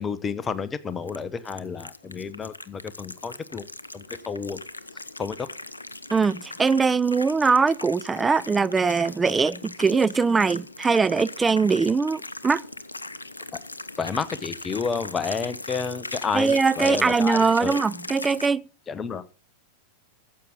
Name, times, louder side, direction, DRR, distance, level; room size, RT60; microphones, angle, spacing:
voice 1, 0.0-3.7 3.9-4.6 5.2-5.5 13.5-13.6 14.0-17.8 18.9-19.3, left 5 dB, 20° left, 0.8 m, -30 dB
sound 1, 1.0-18.5, left 2 dB, 80° left, 0.6 m, -39 dB
voice 2, 6.1-12.6 16.3-18.6, right 5 dB, 15° right, 0.4 m, -22 dB
14.0 x 7.6 x 3.8 m
figure-of-eight pair, 90°, 0 cm